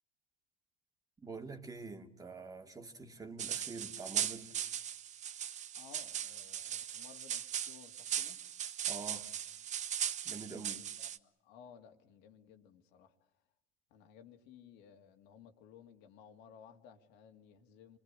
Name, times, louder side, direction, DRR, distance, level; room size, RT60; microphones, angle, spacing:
voice 1, 1.2-4.5 8.9-9.3 10.2-10.8, right 4 dB, 20° right, 2.4 m, -46 dB
sound 1, 3.4-11.2, right 9 dB, 45° right, 1.0 m, -39 dB
voice 2, 5.8-8.4 10.5-10.8 11.4-13.1 13.9-18.0, left 8 dB, 75° left, 2.6 m, -58 dB
26.5 x 21.5 x 9.8 m
supercardioid pair, 100°, 18 cm